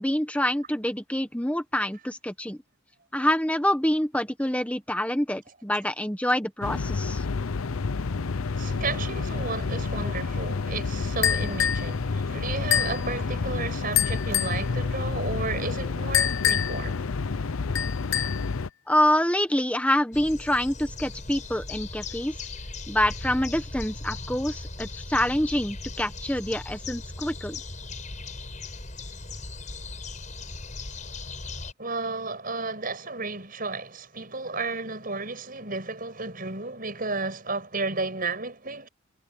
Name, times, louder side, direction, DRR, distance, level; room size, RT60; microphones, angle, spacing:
voice 1, 0.0-2.6 3.1-7.2 18.9-22.4 22.9-27.6, left 1 dB, 5° left, 1.4 m, -26 dB
sound 1, 6.6-18.7, left 4 dB, 80° left, 0.7 m, -29 dB
voice 2, 8.5-16.9 31.8-38.9, right 3 dB, 40° right, 6.8 m, -33 dB
sound 2, 11.2-11.9 12.7-13.0 14.0-14.6 16.1-16.9 17.8-18.5, left 10 dB, 65° left, 1.1 m, -25 dB
sound 3, 20.1-31.7, left 3 dB, 35° left, 7.6 m, -38 dB
head